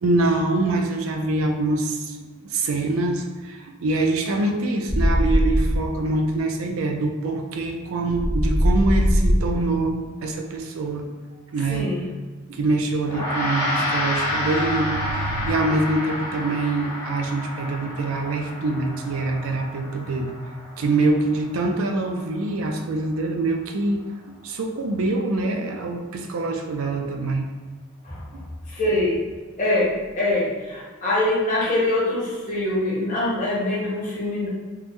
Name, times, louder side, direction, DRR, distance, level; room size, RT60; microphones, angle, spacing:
voice 1, 0.0-2.2 2.4-11.1 11.5-11.9 12.5-20.3 20.8-24.0 24.4-27.5 28.3-28.4, right 2 dB, 70° right, 4 dB, 0.4 m, -24 dB
sound 1, 4.9-5.9 8.1-9.7 13.9-15.5, equal, 20° right, 0.5 m, -22 dB
voice 2, 11.7-12.0 28.0-28.2 28.7-29.2 29.6-34.5, left 1 dB, 35° left, -6 dB, 0.8 m, -24 dB
Gong, 13.0-22.6, left 1 dB, 85° left, 1.1 m, -30 dB
3.5 x 2.0 x 3.0 m, 1.4 s
head